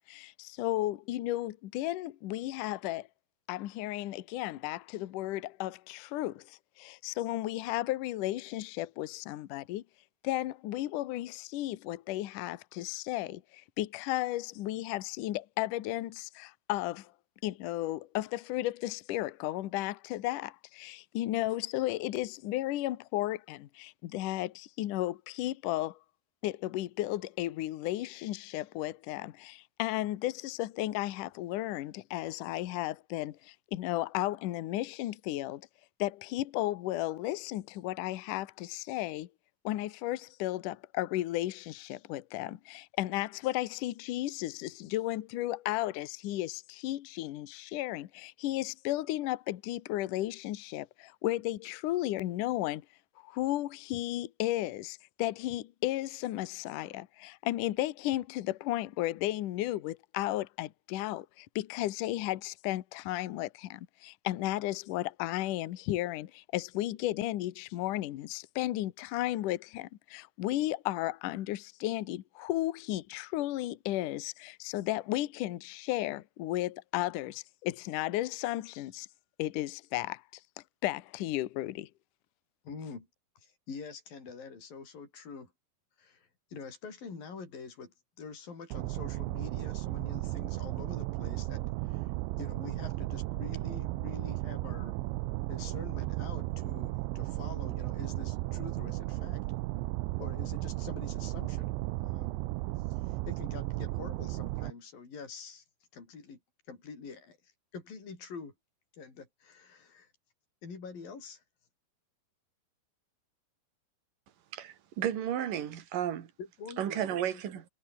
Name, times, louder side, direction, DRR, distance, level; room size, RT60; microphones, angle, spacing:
voice 1, 0.1-3.1 3.5-9.8 10.2-17.1 17.4-26.0 26.4-35.7 36.0-39.3 39.6-52.8 53.2-79.1 79.4-80.2 80.8-81.9, left 15 dB, 70° left, 2.1 m, -34 dB
voice 2, 82.6-83.1 83.4-85.5 86.0-92.1 92.4-95.0 95.5-99.4 100.2-102.3 103.0-105.6 105.9-106.4 106.7-107.4 107.7-108.5 109.0-110.1 110.6-111.4 116.4-117.6, left 5 dB, 50° left, 8.0 m, -46 dB
sound 1, 88.7-104.7, right 20 dB, 85° right, 3.0 m, -35 dB
voice 3, 114.5-116.3 116.8-117.7, right 10 dB, 55° right, 3.6 m, -33 dB
omnidirectional pair, 5.1 m